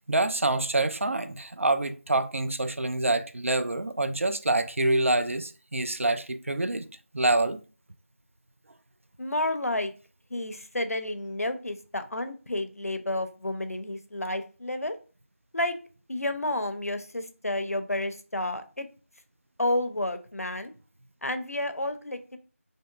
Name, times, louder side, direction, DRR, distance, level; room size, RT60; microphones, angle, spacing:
voice 1, 0.1-6.9 7.1-7.6, right 2 dB, 60° right, 0.3 m, -26 dB
voice 2, 9.2-9.9 10.3-15.0 15.5-15.8 16.1-18.9 19.6-20.7 21.2-22.4, left 1 dB, 85° left, 0.5 m, -30 dB
3.5 x 2.6 x 2.3 m
figure-of-eight pair, 170°, 8 cm